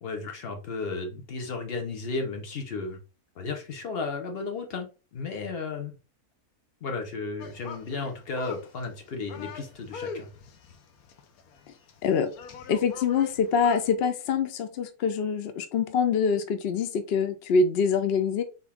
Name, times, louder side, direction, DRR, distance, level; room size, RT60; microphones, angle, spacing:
voice 1, 0.0-3.0 3.4-6.0 6.8-10.3, left 4 dB, 45° left, 4 dB, 1.0 m, -34 dB
sound 1, 7.4-13.9, left 5 dB, 70° left, 1.1 m, -42 dB
voice 2, 12.7-18.4, left 5 dB, 90° left, 9 dB, 0.5 m, -25 dB
4.0 x 2.9 x 3.4 m, 0.32 s
omnidirectional pair, 1.7 m